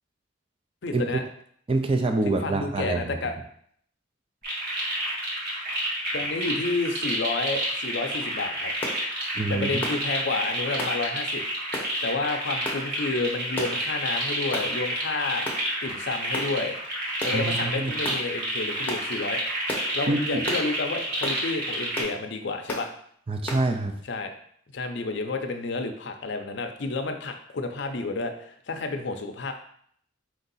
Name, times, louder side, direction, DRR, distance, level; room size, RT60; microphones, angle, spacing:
voice 1, 0.8-1.2 2.3-3.3 6.1-8.7 9.5-11.4 12.0-15.5 15.8-16.8 17.2-19.4 19.9-22.9 24.1-24.3 24.7-29.5, left 3 dB, 60° left, 5 dB, 0.5 m, -30 dB
voice 2, 1.7-3.2 9.3-9.7 17.3-17.9 20.1-20.5 23.3-23.9, right 2 dB, 25° right, 5 dB, 0.4 m, -26 dB
sound 1, 4.4-22.0, right 1 dB, 50° right, 1.4 m, -30 dB
sound 2, 8.8-9.0 9.8-10.0 10.8-11.0 11.7-11.9 12.6-12.8 13.6-13.8 14.5-14.7 15.4-15.6 16.3-16.5 17.2-17.4 18.0-18.2 18.9-19.1 19.7-19.9 20.5-20.7 21.2-21.4 21.9-22.1 22.7-22.9 23.5-23.6, left 1 dB, 10° left, 0.8 m, -33 dB
4.6 x 2.6 x 4.0 m, 0.64 s
head